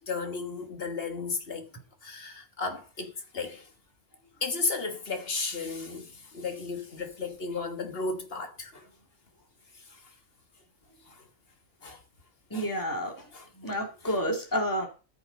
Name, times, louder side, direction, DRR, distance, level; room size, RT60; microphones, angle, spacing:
voice 1, 0.0-1.7 2.0-3.7 4.4-8.9 11.1-11.2 11.8-12.0 12.5-12.7 13.3-13.5 14.0-14.2, left 4 dB, 50° left, 1.6 m, -34 dB
voice 2, 12.5-13.3 13.6-14.9, equal, 15° left, 2.3 m, -30 dB
14.0 x 7.0 x 4.0 m
omnidirectional pair, 1.4 m